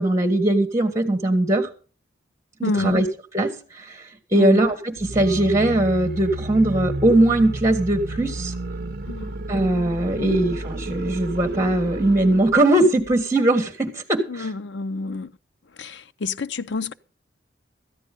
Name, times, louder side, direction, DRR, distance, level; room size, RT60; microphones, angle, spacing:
voice 1, 0.0-1.7 2.6-3.1 3.3-4.0 4.3-8.5 9.5-14.5, right 1 dB, 15° right, 1.6 m, -20 dB
voice 2, 2.6-3.0 4.3-4.6 9.1-9.3 10.2-10.4 14.3-15.3 15.8-16.9, left 3 dB, 65° left, 0.6 m, -28 dB
sound 1, 5.0-12.7, right 2 dB, 55° right, 0.7 m, -32 dB
14.0 x 10.0 x 5.3 m
head